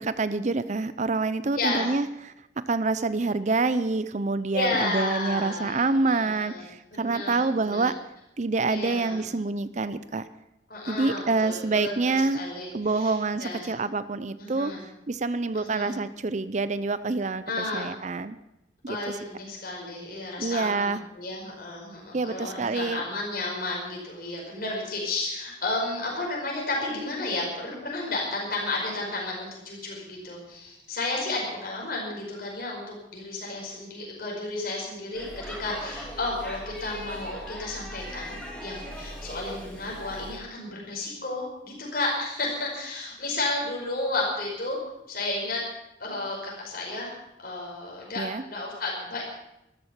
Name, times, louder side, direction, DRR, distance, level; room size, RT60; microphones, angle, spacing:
voice 1, 0.0-2.1 2.7-8.0 8.4-10.2 10.9-12.4 12.7-14.7 15.1-18.4 18.8-19.0 20.4-21.0 22.1-23.0 48.2-48.4, right 3 dB, 40° right, 14 dB, 0.5 m, -27 dB
voice 2, 1.6-2.0 4.5-7.9 8.7-9.3 10.7-13.7 14.4-14.8 15.5-15.9 17.5-17.9 18.9-44.8 45.1-45.6 46.0-47.1 47.4-49.2, left 2 dB, 50° left, -2 dB, 5.2 m, -32 dB
Speech / Shout / Subway metro underground, 35.1-40.4, equal, 5° left, 2.4 m, -39 dB
13.5 x 13.0 x 7.2 m, 0.87 s
head